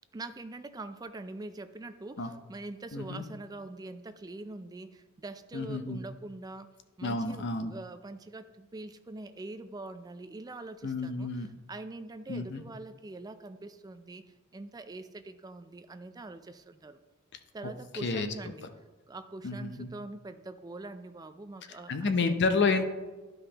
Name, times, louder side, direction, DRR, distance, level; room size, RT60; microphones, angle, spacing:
voice 1, 0.1-6.7 7.0-14.2 14.5-17.0 17.5-18.7 19.1-22.3, right 2 dB, 20° right, 11 dB, 0.3 m, -44 dB
voice 2, 2.9-3.2 5.5-6.0 7.0-7.7 10.8-11.5 12.3-12.6 18.0-18.3 19.4-19.9 21.9-22.8, left 3 dB, 55° left, 8 dB, 0.6 m, -30 dB
11.5 x 5.3 x 2.9 m, 1.2 s
head